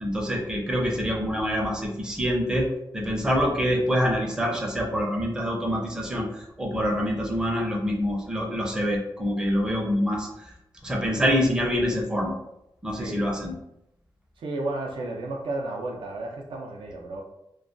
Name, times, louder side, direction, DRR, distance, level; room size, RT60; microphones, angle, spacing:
voice 1, 0.0-10.3 10.8-12.3 12.8-13.6, equal, 10° right, -2 dB, 0.5 m, -26 dB
voice 2, 12.9-13.2 14.4-17.2, right 2 dB, 75° right, 0 dB, 0.5 m, -33 dB
2.3 x 2.2 x 2.5 m, 0.84 s
wide cardioid pair, 105°, 9 cm